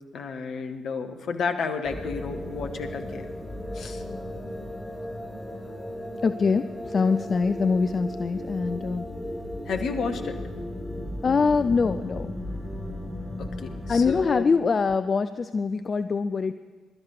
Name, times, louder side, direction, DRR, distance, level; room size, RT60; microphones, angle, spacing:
voice 1, 0.1-3.3 3.7-4.0 9.7-10.4 13.4-14.5, left 5 dB, 55° left, 6 dB, 1.3 m, -31 dB
sound 1, 1.8-14.2, left 1 dB, 5° left, 4.4 m, -35 dB
voice 2, 6.2-9.1 11.2-12.4 13.1-13.2 13.9-16.5, left 4 dB, 40° left, 12 dB, 0.5 m, -24 dB
22.0 x 12.5 x 4.9 m, 1.4 s
figure-of-eight pair, 40°, 0 cm